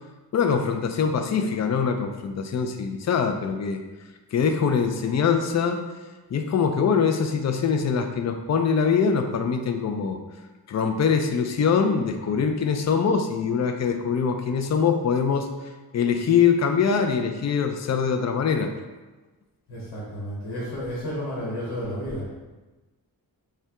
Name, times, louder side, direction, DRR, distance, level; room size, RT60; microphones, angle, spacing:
voice 1, 0.3-3.8 4.3-5.8 6.3-10.2 10.7-18.7, left 6 dB, 45° left, 5 dB, 0.4 m, -23 dB
voice 2, 19.7-22.3, equal, 90° left, -6 dB, 1.1 m, -32 dB
5.5 x 2.2 x 3.6 m, 1.2 s
wide cardioid pair, 150°, 38 cm